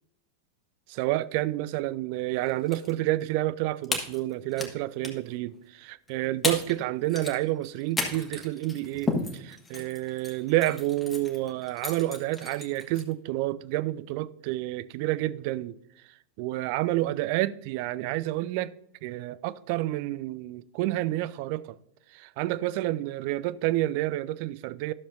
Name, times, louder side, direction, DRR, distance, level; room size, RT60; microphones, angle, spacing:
voice 1, 0.9-15.8 16.4-18.7 19.0-21.8 22.1-24.9, right 16 dB, 45° right, 0.3 m, -29 dB
sound 1, 2.5-2.9 3.2-3.3 3.8-4.7 5.0-5.3 6.1-6.2 6.4-6.8 7.0-13.1, left 3 dB, 15° left, 1.4 m, -34 dB
12.5 x 6.8 x 2.6 m
figure-of-eight pair, 90°, 0 cm